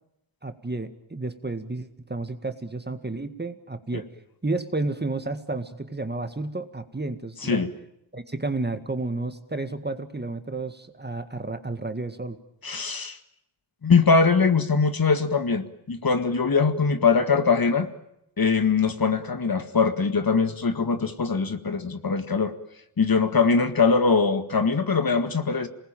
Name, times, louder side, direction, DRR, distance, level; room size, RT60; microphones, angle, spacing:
voice 1, 0.4-4.1 4.4-7.6 8.1-12.4, right 2 dB, 20° right, 9 dB, 1.9 m, -31 dB
voice 2, 12.6-13.2 13.8-17.9 18.4-22.5 23.0-25.7, left 5 dB, 45° left, 9 dB, 1.9 m, -22 dB
27.5 x 20.0 x 9.1 m, 0.84 s
wide cardioid pair, 80°, 48 cm